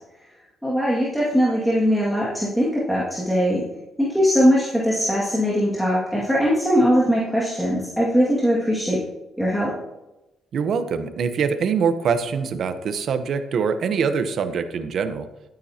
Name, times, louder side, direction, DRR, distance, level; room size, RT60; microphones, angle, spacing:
voice 1, 0.6-3.7 4.0-9.0 9.4-9.8, equal, ahead, -7 dB, 2.1 m, -20 dB
voice 2, 10.5-15.3, right 6 dB, 60° right, 10 dB, 0.9 m, -24 dB
12.0 x 9.1 x 2.9 m, 0.96 s
cardioid pair, 90°, 0 cm